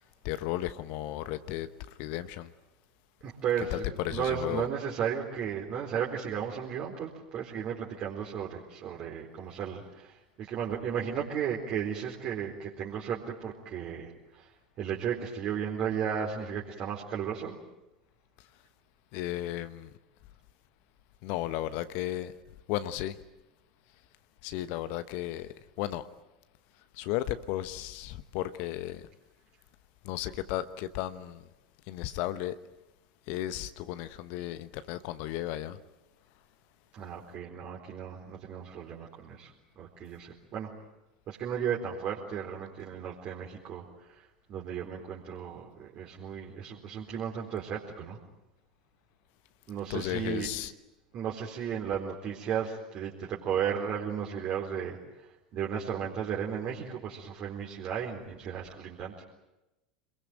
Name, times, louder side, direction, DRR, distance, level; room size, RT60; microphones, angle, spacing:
voice 1, 0.2-1.7 2.0-2.5 3.7-3.8 4.0-4.7 19.1-19.9 21.2-22.3 22.7-23.2 24.4-25.5 25.8-26.0 26.9-29.0 30.0-31.4 31.9-32.5 33.3-35.8 49.9-50.7, left 14 dB, 50° left, 1.1 m, -34 dB
voice 2, 3.2-14.5 14.8-17.6 36.9-39.5 39.8-40.7 41.3-48.2 49.7-50.5 51.1-59.2, right 8 dB, 40° right, 4.3 m, -34 dB
27.0 x 22.0 x 9.0 m
figure-of-eight pair, 80°, 4 cm